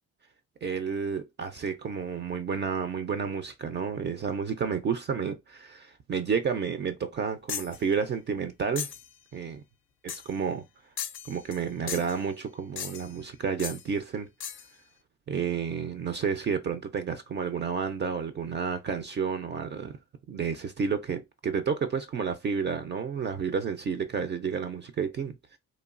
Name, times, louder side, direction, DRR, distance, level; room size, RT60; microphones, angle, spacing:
voice 1, 0.6-8.9 9.3-9.6 10.0-10.6 11.2-14.3 15.3-20.0 20.3-25.4, right 6 dB, 35° right, 0.4 m, -31 dB
sound 1, 7.5-7.8 8.8-9.1 10.1-10.4 11.0-11.6 11.9-12.2 12.8-13.2 13.6-13.8 14.4-14.7, left 8 dB, 45° left, 0.4 m, -37 dB
3.0 x 2.2 x 2.4 m
cardioid pair, 90°, 30 cm